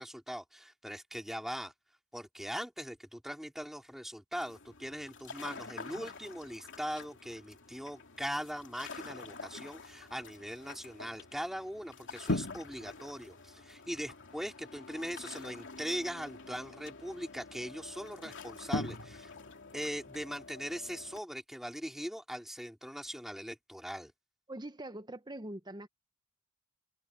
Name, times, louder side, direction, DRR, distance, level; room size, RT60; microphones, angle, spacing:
voice 1, 0.0-1.7 2.1-19.3 19.7-24.1, equal, ahead, 2.7 m, -40 dB
sound 1, 4.4-21.2, left 2 dB, 60° left, 3.0 m, -44 dB
voice 2, 24.5-25.9, right 1 dB, 20° right, 1.0 m, -43 dB
head